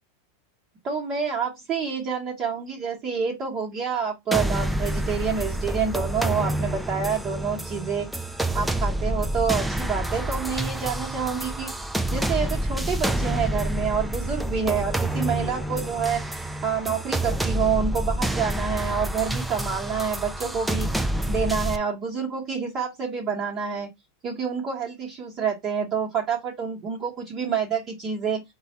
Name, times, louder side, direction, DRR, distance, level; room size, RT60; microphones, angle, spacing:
voice 1, 0.8-8.3 8.5-23.9 24.2-28.4, right 6 dB, 30° right, 1.1 m, -28 dB
sound 1, 4.3-21.8, right 1 dB, 5° right, 0.4 m, -28 dB
4.0 x 2.3 x 4.2 m
supercardioid pair, 140°, 0 cm